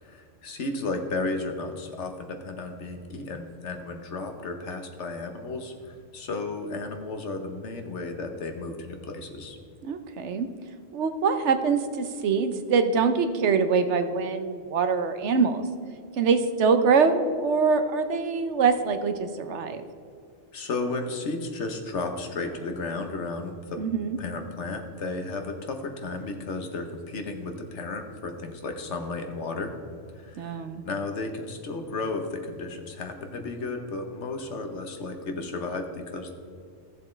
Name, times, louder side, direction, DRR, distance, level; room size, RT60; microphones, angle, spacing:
voice 1, 0.0-9.6 20.5-23.8 24.2-29.7 30.2-36.3, left 3 dB, 80° left, 5 dB, 1.4 m, -33 dB
voice 2, 9.8-10.5 10.9-15.6 16.2-19.8 23.8-24.2 30.4-30.8, right 5 dB, 80° right, 8 dB, 1.1 m, -24 dB
16.0 x 7.2 x 3.3 m, 2.4 s
omnidirectional pair, 1.2 m